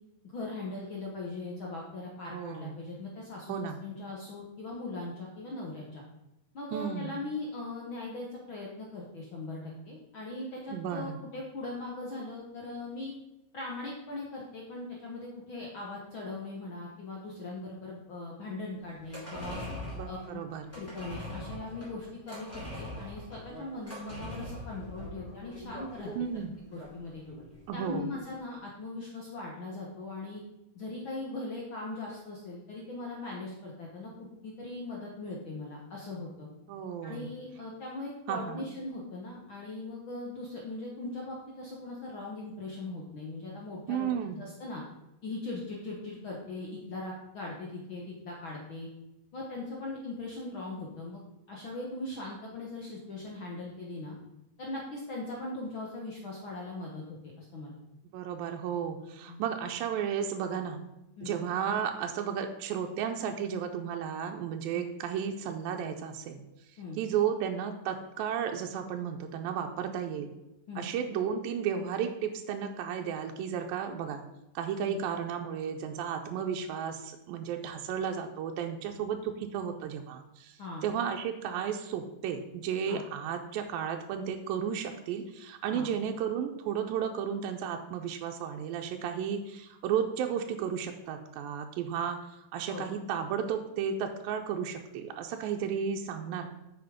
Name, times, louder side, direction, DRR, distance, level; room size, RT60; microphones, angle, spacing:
voice 1, 0.2-6.0 6.5-13.1 13.5-19.6 20.1-20.4 20.7-26.1 26.7-27.2 27.7-30.4 30.7-36.5 37.0-44.1 44.4-44.8 45.2-48.9 49.3-51.2 51.5-54.2 54.6-57.8 59.3-59.4 61.2-61.4 64.7-64.8 66.8-67.0 70.7-70.9 74.8-75.0 80.6-80.8 82.9-83.0 85.7-85.9 92.7-92.8, left 2 dB, 75° left, -2 dB, 1.1 m, -40 dB
voice 2, 2.3-2.8 3.5-3.8 6.7-7.1 10.7-11.2 20.0-20.6 26.2-26.5 27.7-28.1 36.7-37.3 38.3-38.7 43.9-44.4 58.1-60.8 61.2-66.4 67.0-70.3 70.8-74.2 74.6-92.2 92.5-96.5, right 8 dB, 85° right, 3 dB, 2.4 m, -33 dB
sound 1, 18.9-27.6 27.9-28.0, left 1 dB, 5° left, 2.5 m, -42 dB
8.1 x 5.8 x 5.0 m, 0.92 s
omnidirectional pair, 4.0 m